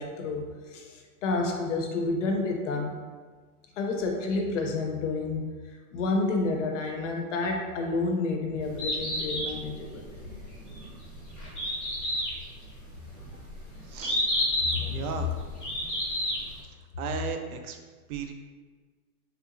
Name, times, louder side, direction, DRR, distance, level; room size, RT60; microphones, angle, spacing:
voice 1, 0.0-3.0 3.8-5.5 5.9-10.0, left 3 dB, 55° left, 2 dB, 0.6 m, -29 dB
Bird, 8.6-16.6, left 1 dB, 10° left, 0.3 m, -31 dB
voice 2, 13.9-14.2 14.9-15.4 17.0-17.8 18.1-18.3, right 6 dB, 75° right, 5 dB, 0.6 m, -35 dB
3.4 x 2.8 x 2.4 m, 1.5 s
hypercardioid pair, 165°, 44 cm